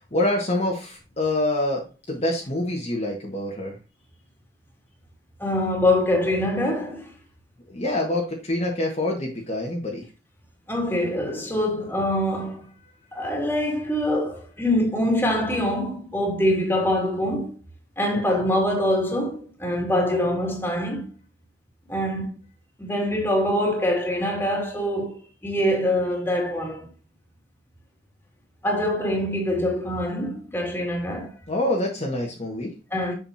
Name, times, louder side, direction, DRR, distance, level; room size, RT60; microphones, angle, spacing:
voice 1, 0.1-3.8 7.7-10.0 18.3-18.4 31.5-32.7, left 1 dB, 35° left, 1.5 m, -26 dB
voice 2, 5.4-7.1 10.7-12.7 13.1-17.5 18.0-21.1 21.9-22.4 22.8-26.9 28.6-31.3 32.9-33.1, left 1 dB, 10° left, 2.3 m, -24 dB
7.3 x 6.7 x 2.8 m
head